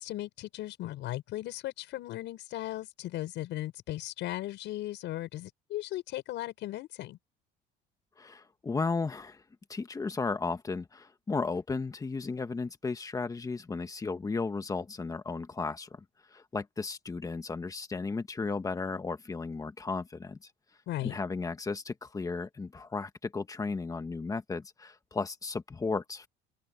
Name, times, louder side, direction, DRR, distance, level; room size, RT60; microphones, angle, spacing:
voice 1, 0.0-7.2 20.9-21.2, left 15 dB, 65° left, 5.8 m, -37 dB
voice 2, 8.2-9.4 9.7-16.0 16.3-20.4 21.0-26.3, left 4 dB, 15° left, 1.5 m, -34 dB
open air
cardioid pair, 140°, 20 cm